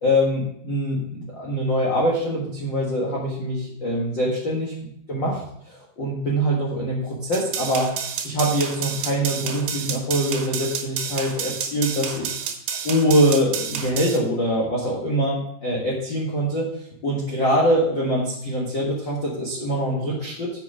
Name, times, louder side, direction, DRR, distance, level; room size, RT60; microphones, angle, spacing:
voice 1, 0.0-4.7 5.1-7.9 8.2-12.3 12.8-20.5, equal, 85° left, -4 dB, 1.0 m, -24 dB
sound 1, 7.3-14.2, right 8 dB, 85° right, 3.2 m, -30 dB
7.6 x 6.2 x 4.8 m, 0.72 s
omnidirectional pair, 4.7 m